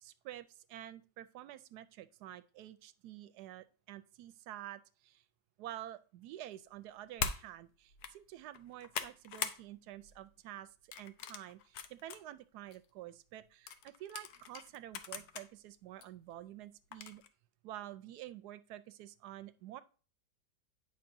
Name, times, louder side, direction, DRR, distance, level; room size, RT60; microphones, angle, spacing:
voice 1, 0.0-5.2 5.6-17.2 17.6-19.8, right 13 dB, 80° right, 13 dB, 1.1 m, -49 dB
sound 1, 7.2-7.4 7.9-8.1 8.5-9.6 10.0-10.3 10.9-12.2 12.7-12.8 13.7-15.5 16.0-16.1 16.9-17.3, left 7 dB, 70° left, 1.1 m, -41 dB
8.6 x 5.8 x 2.6 m, 0.37 s
omnidirectional pair, 1.8 m